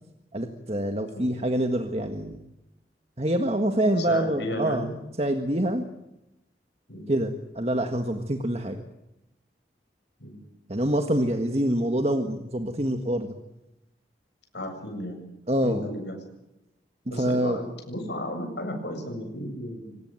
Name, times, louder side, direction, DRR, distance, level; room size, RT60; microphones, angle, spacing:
voice 1, 0.3-2.4 3.2-4.9 5.2-5.9 7.1-8.8 10.7-13.4 15.5-15.8 17.1-17.6, right 1 dB, 35° right, 5 dB, 1.7 m, -26 dB
voice 2, 4.1-4.9 6.9-7.1 10.2-10.4 14.5-15.2 15.6-16.2 17.1-20.0, equal, 85° left, 4 dB, 7.6 m, -34 dB
25.5 x 19.0 x 9.2 m, 0.92 s
head